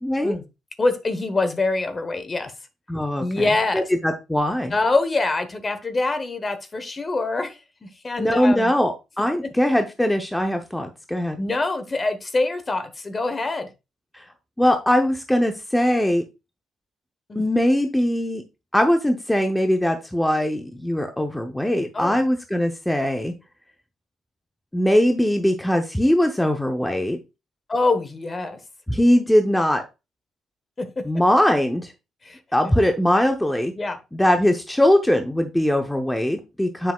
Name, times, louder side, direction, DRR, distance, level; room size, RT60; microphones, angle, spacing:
voice 1, 0.0-0.3 2.9-3.2 3.7-4.7 8.2-11.4 14.1-14.2 14.6-16.2 17.4-18.4 18.7-23.3 24.7-27.2 28.9-29.8 31.0-31.9 32.5-33.7 34.1-36.9, left 1 dB, 5° left, 5 dB, 0.7 m, -21 dB
voice 2, 0.8-2.5 3.2-3.8 4.7-8.7 11.4-13.7 17.3-17.5 21.9-22.2 27.7-28.6 30.8-31.0 32.2-32.7 33.8-34.0, left 3 dB, 30° left, 10 dB, 1.0 m, -25 dB
7.3 x 5.7 x 2.3 m, 0.26 s
cardioid pair, 90°, 0 cm